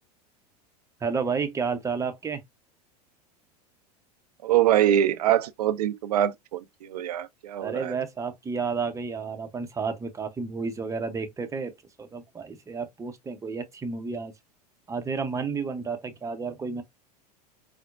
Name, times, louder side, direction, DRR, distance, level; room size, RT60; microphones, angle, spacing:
voice 1, 1.0-2.4 7.6-11.7 12.0-14.3 14.9-16.8, right 5 dB, 15° right, 0.7 m, -31 dB
voice 2, 4.4-7.9, right 11 dB, 70° right, 0.5 m, -24 dB
4.3 x 2.1 x 2.4 m
figure-of-eight pair, 85°, 21 cm